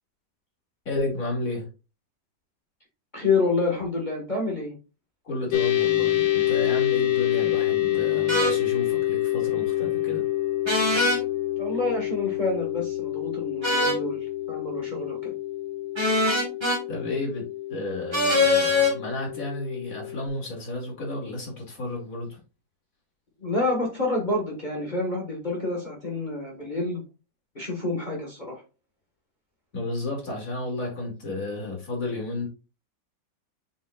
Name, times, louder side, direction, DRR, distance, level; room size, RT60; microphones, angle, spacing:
voice 1, 0.8-1.7 5.2-10.2 16.9-22.4 29.7-32.5, left 2 dB, 50° left, -1 dB, 3.0 m, -32 dB
voice 2, 3.1-4.8 11.6-15.3 23.4-27.0 27.5-28.6, left 3 dB, 25° left, -1 dB, 1.7 m, -28 dB
sound 1, 5.5-20.3, left 15 dB, 70° left, 1.7 m, -27 dB
sound 2, 8.3-8.5 10.6-11.2 13.6-14.0 15.9-16.8 18.1-18.9, left 2 dB, 15° right, 1.6 m, -22 dB
7.4 x 5.3 x 2.4 m, 0.30 s
omnidirectional pair, 1.8 m